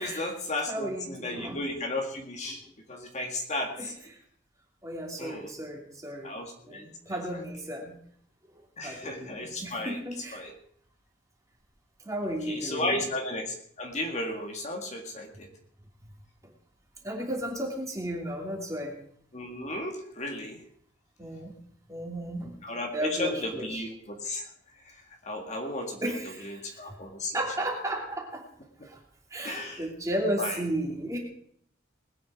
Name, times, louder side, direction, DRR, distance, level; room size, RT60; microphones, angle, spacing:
voice 1, 0.0-2.6 2.9-3.9 5.2-5.5 6.2-7.4 8.8-10.0 10.3-10.5 12.5-15.5 19.3-20.6 22.6-24.5 24.9-25.0 25.3-26.0 26.4-27.4 29.4-29.8 30.4-30.6, left 1 dB, 35° left, 2 dB, 2.0 m, -34 dB
voice 2, 0.7-1.6 2.5-2.6 3.8-3.9 4.8-6.4 6.7-8.0 8.5-10.4 12.0-13.0 17.0-19.0 21.2-21.6 21.9-22.6 22.9-23.8 26.0-26.8 27.3-28.4 28.8-29.0 29.3-31.2, right 1 dB, 15° right, 0 dB, 2.9 m, -34 dB
20.5 x 9.3 x 4.8 m, 0.64 s
head